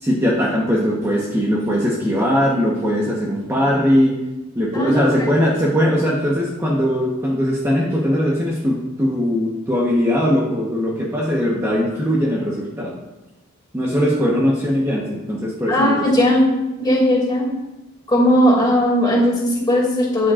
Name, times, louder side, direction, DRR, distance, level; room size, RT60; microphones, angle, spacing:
voice 1, 0.0-4.2 4.5-13.0 13.7-16.0, equal, 15° right, -5 dB, 1.1 m, -20 dB
voice 2, 4.7-5.1 15.7-16.4 16.8-17.5 18.1-20.3, equal, 20° left, -4 dB, 2.6 m, -17 dB
12.5 x 7.5 x 2.5 m, 0.98 s
head